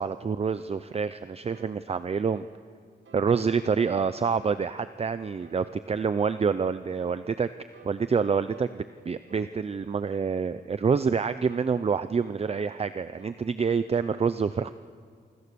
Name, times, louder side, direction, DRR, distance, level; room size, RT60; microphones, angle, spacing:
voice 1, 0.0-2.5 3.1-7.5 7.8-14.7, right 5 dB, 35° right, 12 dB, 0.5 m, -27 dB
sound 1, 1.5-1.7 2.3-2.5 3.1-3.3 3.8-4.1 4.6-4.8 5.4-5.6 6.2-6.4 7.0-7.2 7.7-8.0 8.5-8.7 9.3-9.5 10.1-10.3 10.8-11.1 11.6-11.9 12.4-12.6 13.2-13.4, right 5 dB, 85° right, 3.1 m, -54 dB
27.5 x 25.0 x 6.9 m, 2.1 s
wide cardioid pair, 150°, 19 cm